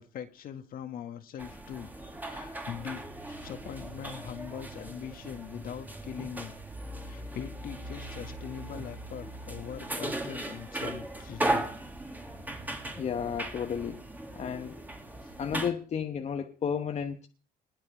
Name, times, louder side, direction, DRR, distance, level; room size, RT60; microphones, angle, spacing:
voice 1, 0.0-1.9 2.2-6.6 7.0-11.7 15.2-15.3, left 9 dB, 60° left, 1.8 m, -42 dB
sound 1, 1.4-15.7, right 1 dB, 10° right, 2.2 m, -37 dB
voice 2, 13.0-14.0 14.3-14.7 15.4-17.3, left 7 dB, 40° left, 1.1 m, -32 dB
20.5 x 9.5 x 4.9 m
cardioid pair, 110°, 17 cm